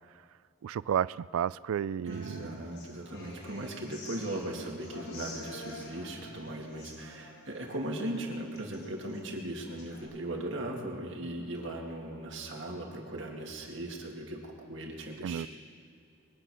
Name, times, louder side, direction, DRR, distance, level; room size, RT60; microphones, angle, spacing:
voice 1, 0.6-2.6 3.5-3.7 15.2-15.5, right 9 dB, 85° right, 0.3 m, -32 dB
voice 2, 2.0-15.5, right 1 dB, 60° right, 2.4 m, -38 dB
Human voice / Acoustic guitar, 2.1-10.0, left 2 dB, 90° left, 4.3 m, -49 dB
22.5 x 9.1 x 6.4 m
head